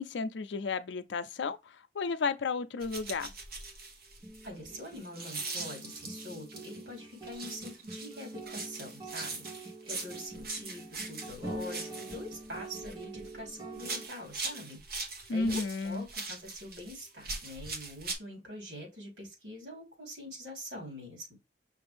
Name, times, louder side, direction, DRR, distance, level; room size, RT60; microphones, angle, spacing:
voice 1, 0.0-3.3 15.3-16.0, left 4 dB, 85° left, 0.5 m, -33 dB
sound 1, 2.8-6.8 7.2-13.4 13.7-18.1, right 3 dB, 55° right, 1.2 m, -41 dB
sound 2, 4.2-14.1, right 2 dB, 20° right, 1.0 m, -45 dB
voice 2, 4.4-14.8 15.3-21.4, left 1 dB, 80° right, 3.2 m, -44 dB
5.8 x 2.6 x 3.4 m
head